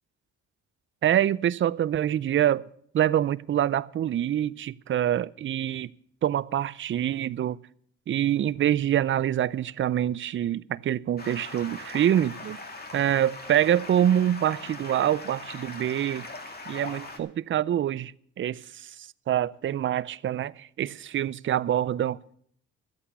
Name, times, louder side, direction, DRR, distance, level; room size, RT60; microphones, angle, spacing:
voice 1, 1.0-2.7 2.9-5.9 6.2-7.6 8.1-12.6 12.9-16.3 16.7-18.1 18.4-22.4, right 11 dB, 40° right, 0.5 m, -25 dB
Stream, 11.2-17.2, left 2 dB, 30° left, 2.2 m, -41 dB
13.0 x 8.5 x 6.8 m
cardioid pair, 90°, 30 cm